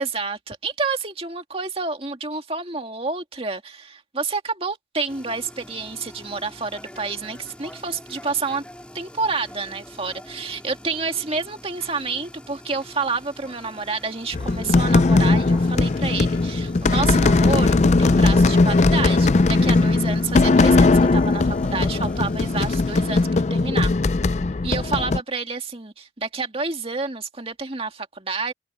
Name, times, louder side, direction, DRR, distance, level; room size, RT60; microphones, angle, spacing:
voice 1, 0.0-8.6 8.9-23.9 24.6-28.5, right 4 dB, 30° right, 2.2 m, -29 dB
sound 1, 5.1-23.2, equal, 5° left, 3.4 m, -44 dB
sound 2, 14.3-25.2, left 3 dB, 40° left, 0.4 m, -18 dB
open air
head